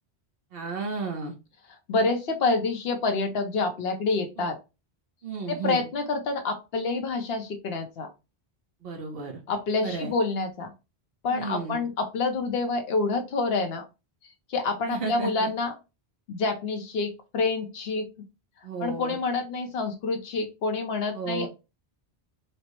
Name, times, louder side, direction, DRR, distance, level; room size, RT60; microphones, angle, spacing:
voice 1, 0.5-1.3 4.4-4.5 5.2-5.8 8.8-9.4 9.8-10.1 11.3-11.8 14.9-15.5 18.6-19.1 21.1-21.5, right 4 dB, 70° right, 2 dB, 0.9 m, -33 dB
voice 2, 1.9-4.6 5.5-8.1 9.5-10.7 11.2-13.8 14.5-15.8 16.3-18.1 18.8-21.5, left 3 dB, 75° left, 6 dB, 0.9 m, -27 dB
4.3 x 2.0 x 2.9 m, 0.28 s
omnidirectional pair, 1.1 m